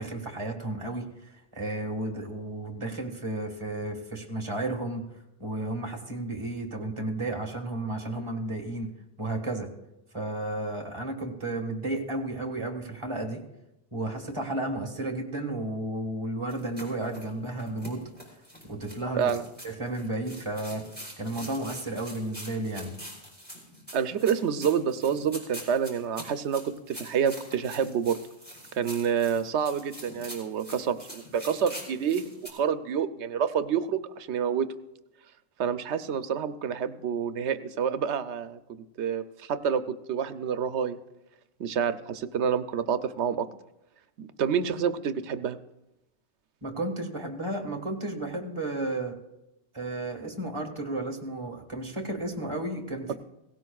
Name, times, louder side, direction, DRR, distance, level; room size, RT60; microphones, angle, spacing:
voice 1, 0.0-5.0 5.4-8.9 9.2-9.7 10.1-13.4 13.9-18.0 18.6-19.3 19.6-20.8 21.2-22.9 46.6-49.2 49.7-53.1, right 2 dB, 25° right, 1 dB, 1.6 m, -33 dB
sound 1, 16.5-32.5, equal, 10° left, 3.4 m, -44 dB
voice 2, 19.2-19.5 23.9-28.2 28.7-34.7 35.6-38.6 39.0-41.0 41.6-43.5 44.2-45.6, right 7 dB, 85° right, 11 dB, 1.0 m, -28 dB
17.0 x 16.5 x 2.4 m, 0.91 s
omnidirectional pair, 1.1 m